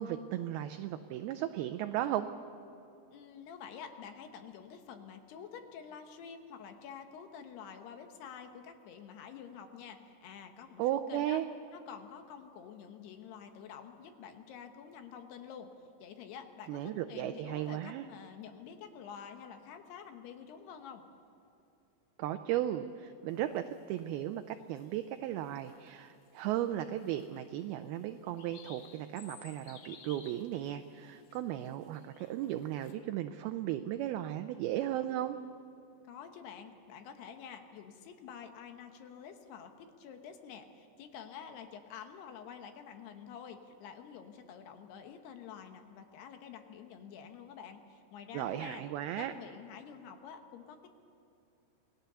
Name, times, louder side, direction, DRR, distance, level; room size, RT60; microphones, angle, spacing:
voice 1, 0.0-2.3 10.8-11.5 16.7-18.1 22.2-35.4 48.3-49.3, right 12 dB, 80° right, 8 dB, 2.3 m, -35 dB
voice 2, 3.1-11.4 11.7-15.7 16.0-16.8 17.1-21.1 36.0-48.8 49.2-50.9, left 7 dB, 75° left, 6 dB, 3.2 m, -48 dB
sound 1, 23.3-24.1 24.5-25.1 25.5-25.9 26.2-26.7 27.0-27.6 28.0-32.9, left 6 dB, 60° left, 2.4 m, -56 dB
27.5 x 18.5 x 6.9 m, 2.7 s
omnidirectional pair, 4.9 m